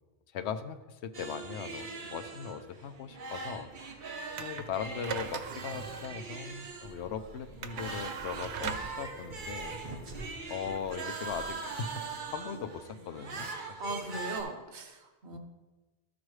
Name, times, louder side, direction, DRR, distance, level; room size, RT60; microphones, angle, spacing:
voice 1, 0.3-3.7 4.4-9.8 10.5-13.5 13.9-14.0 15.3-15.4, left 7 dB, 85° left, 9 dB, 0.9 m, -39 dB
sound 1, 1.1-14.4, right 4 dB, 50° right, 1.1 m, -42 dB
sound 2, 4.3-12.8, right 6 dB, 85° right, 1.0 m, -42 dB
sound 3, 6.9-10.9 11.2-11.5, equal, 65° left, 1.9 m, -50 dB
voice 2, 13.6-15.4, right 2 dB, 70° right, 4 dB, 1.2 m, -39 dB
13.5 x 6.1 x 3.2 m, 1.2 s
omnidirectional pair, 1.1 m